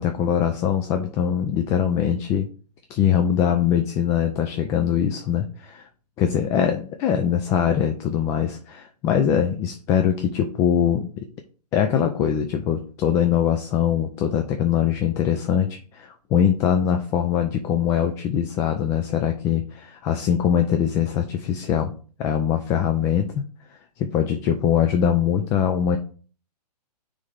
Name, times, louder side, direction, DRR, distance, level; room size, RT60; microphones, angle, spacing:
voice 1, 0.0-2.5 2.9-5.9 6.2-11.3 11.7-21.9 22.2-23.3 24.0-26.0, left 8 dB, 15° left, 6 dB, 0.3 m, -22 dB
9.4 x 3.3 x 3.4 m, 0.40 s
figure-of-eight pair, 125°, 21 cm